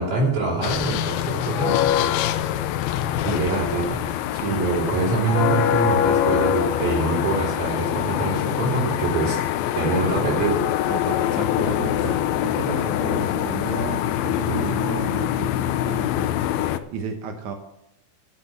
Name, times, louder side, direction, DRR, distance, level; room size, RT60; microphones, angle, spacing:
voice 1, 0.0-1.8 3.3-4.0 4.5-9.4 9.8-10.6, right 3 dB, 60° right, -4 dB, 5.3 m, -24 dB
sound 1, 0.6-16.8, left 11 dB, 80° left, 2.3 m, -24 dB
voice 2, 4.3-4.6 10.9-17.5, right 5 dB, 85° right, 5 dB, 1.6 m, -32 dB
9.6 x 8.7 x 7.7 m, 0.88 s
omnidirectional pair, 5.0 m